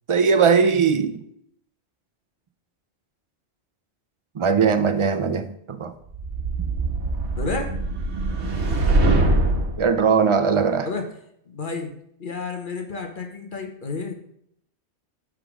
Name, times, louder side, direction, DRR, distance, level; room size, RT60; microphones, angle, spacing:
voice 1, 0.1-1.2 4.4-5.9 9.8-10.9, right 6 dB, 50° right, 9 dB, 0.4 m, -19 dB
sound 1, 6.1-9.8, right 2 dB, 70° right, 1.5 m, -22 dB
voice 2, 7.4-7.8 9.2-9.8 10.8-11.1 11.5-11.9 12.2-14.1, left 3 dB, 45° left, 4 dB, 1.0 m, -31 dB
8.0 x 3.8 x 6.1 m, 0.71 s
omnidirectional pair, 1.2 m